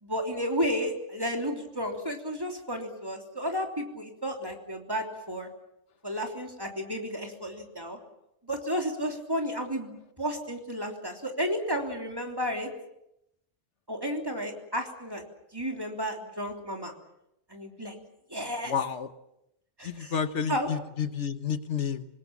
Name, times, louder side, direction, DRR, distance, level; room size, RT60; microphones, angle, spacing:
voice 1, 0.0-5.5 6.0-8.0 8.5-12.7 13.9-15.2 15.5-16.9 17.5-18.0 18.3-18.7 19.8-20.2 20.5-20.7, equal, 20° right, 2 dB, 3.3 m, -32 dB
voice 2, 18.7-19.1 19.8-22.1, left 7 dB, 80° left, 11 dB, 1.5 m, -30 dB
27.0 x 20.5 x 7.3 m, 0.82 s
omnidirectional pair, 1.2 m